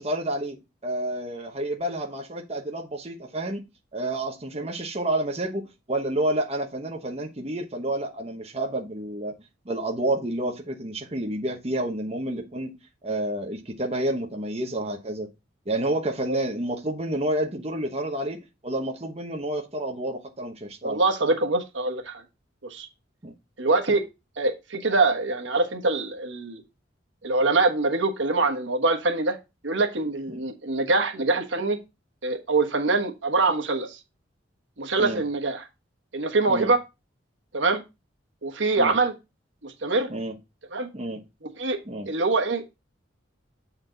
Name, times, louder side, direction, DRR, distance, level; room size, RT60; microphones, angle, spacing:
voice 1, 0.0-3.6 3.9-9.3 9.6-12.7 13.0-15.3 15.7-21.0 23.2-23.3 30.3-30.4 35.0-35.2 36.5-36.7 38.8-39.0 40.1-40.3 40.9-41.2 41.9-42.1, right 1 dB, 35° right, 1.0 m, -29 dB
voice 2, 20.8-22.2 22.6-22.9 23.6-24.0 24.4-26.6 27.2-29.4 29.6-31.8 32.2-34.0 34.8-35.7 36.1-36.8 37.5-37.8 38.4-39.1 39.6-40.1 40.7-40.9 41.4-41.8 42.1-42.7, right 3 dB, 80° right, 1.3 m, -24 dB
7.6 x 4.4 x 3.9 m
head